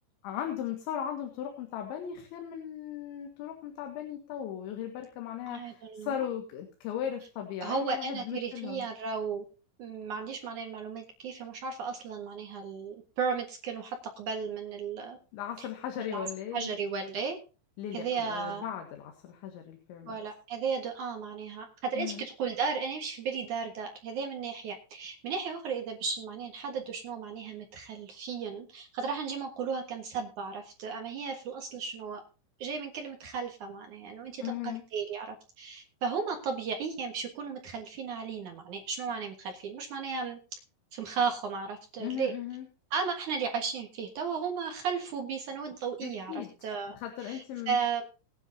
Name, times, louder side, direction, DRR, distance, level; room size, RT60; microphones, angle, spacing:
voice 1, 0.2-8.9 15.3-16.8 17.8-20.2 22.0-22.2 34.4-34.8 42.0-42.7 46.0-46.5 47.0-47.8, left 10 dB, 70° left, 3 dB, 3.8 m, -37 dB
voice 2, 5.5-6.2 7.6-9.4 9.8-15.2 15.6-15.7 16.0-16.2 16.5-17.4 17.9-18.6 20.1-32.2 32.6-40.4 40.9-42.3 42.9-47.0 47.2-48.0, right 5 dB, 70° right, 3 dB, 1.8 m, -35 dB
20.5 x 10.0 x 2.7 m, 0.33 s
omnidirectional pair, 5.9 m